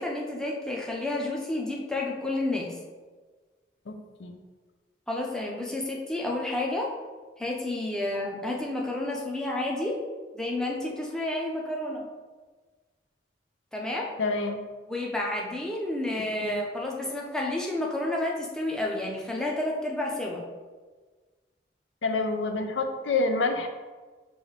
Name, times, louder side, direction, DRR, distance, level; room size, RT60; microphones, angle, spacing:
voice 1, 0.0-2.7 5.1-6.9 7.4-10.0 10.3-12.1 13.7-14.1 14.9-20.4, left 1 dB, 5° left, -2 dB, 0.5 m, -30 dB
voice 2, 3.9-4.4 14.2-14.6 16.4-16.6 22.0-23.7, left 3 dB, 90° left, 5 dB, 0.5 m, -28 dB
6.1 x 2.6 x 3.2 m, 1.4 s
head